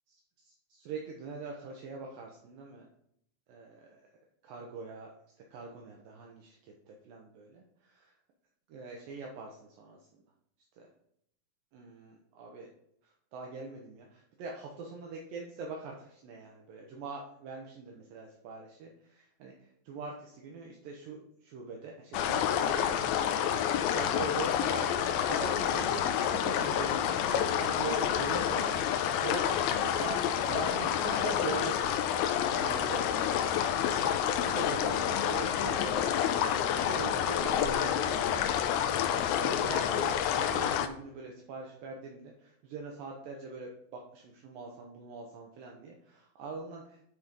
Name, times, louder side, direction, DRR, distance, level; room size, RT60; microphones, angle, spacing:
voice 1, 0.8-2.9 3.5-4.0 4.4-5.1 5.5-6.6 6.9-8.1 8.7-10.0 10.8-10.9 11.7-12.7 13.3-19.5 19.9-28.8 29.2-32.1 32.5-36.4 36.7-38.5 39.2-47.0, right 4 dB, 70° right, 0 dB, 2.5 m, -42 dB
sound 1, 22.1-40.9, left 9 dB, 85° left, 2.5 m, -29 dB
9.8 x 4.4 x 5.2 m, 0.72 s
omnidirectional pair, 4.4 m